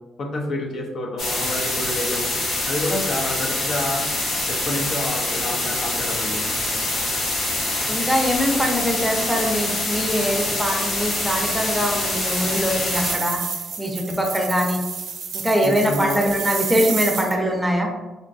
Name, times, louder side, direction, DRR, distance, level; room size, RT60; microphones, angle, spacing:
voice 1, 0.2-2.3 2.7-4.1 4.5-6.6 15.6-16.2, left 2 dB, 60° left, 1 dB, 0.6 m, -29 dB
sound 1, 1.2-13.1, left 2 dB, 75° left, 1.1 m, -25 dB
voice 2, 7.9-13.4 13.8-14.8 15.3-17.9, equal, 5° right, 1 dB, 0.6 m, -22 dB
sound 2, 11.0-17.3, right 6 dB, 65° right, 0.4 m, -31 dB
3.7 x 2.2 x 2.6 m, 1.1 s
cardioid pair, 90°, 0 cm